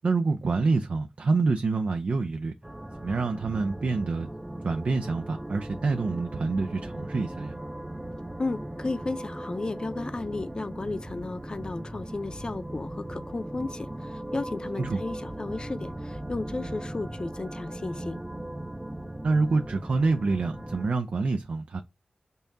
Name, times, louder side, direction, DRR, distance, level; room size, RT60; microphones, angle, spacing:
voice 1, 0.0-2.5 3.0-4.3 4.6-7.5 14.8-15.0 19.2-21.8, right 3 dB, 75° right, 0.5 m, -27 dB
sound 1, 2.6-20.9, right 1 dB, 15° right, 0.5 m, -38 dB
voice 2, 8.4-18.2, left 3 dB, 35° left, 0.6 m, -34 dB
5.5 x 2.8 x 3.4 m
wide cardioid pair, 100°, 2 cm